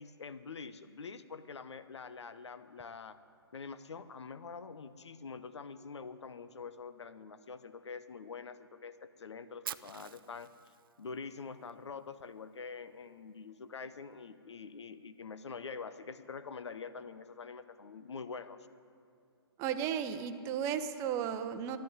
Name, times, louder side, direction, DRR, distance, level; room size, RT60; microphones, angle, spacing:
voice 1, 0.0-3.2 3.5-10.5 11.0-18.7, left 5 dB, 80° left, 12 dB, 0.8 m, -45 dB
Fire, 9.6-11.7, right 10 dB, 50° right, 0.5 m, -46 dB
voice 2, 19.6-21.8, right 8 dB, 20° right, 9 dB, 0.8 m, -34 dB
13.0 x 10.5 x 9.6 m, 2.5 s
hypercardioid pair, 145°, 14 cm